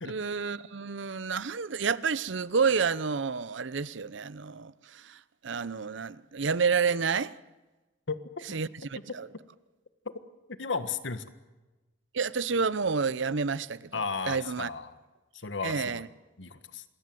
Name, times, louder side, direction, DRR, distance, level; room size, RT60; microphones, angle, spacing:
voice 1, 0.0-5.2 5.4-7.3 8.5-9.3 12.1-14.7 15.6-16.1, right 5 dB, 80° right, 0.7 m, -29 dB
voice 2, 8.1-8.4 10.6-11.2 13.9-14.9 15.4-16.1 16.4-16.8, left 4 dB, 80° left, 1.5 m, -34 dB
27.0 x 21.5 x 7.8 m
head